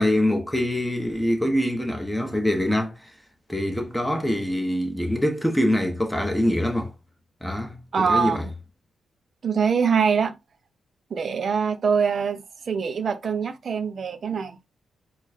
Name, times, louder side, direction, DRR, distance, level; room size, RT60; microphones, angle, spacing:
voice 1, 0.0-3.1 3.5-6.9 7.4-8.4, left 1 dB, 5° left, 1.3 m, -24 dB
voice 2, 7.9-8.5 9.4-10.4 11.1-14.6, right 6 dB, 50° right, 0.9 m, -24 dB
4.7 x 2.4 x 4.5 m
cardioid pair, 105°, 0 cm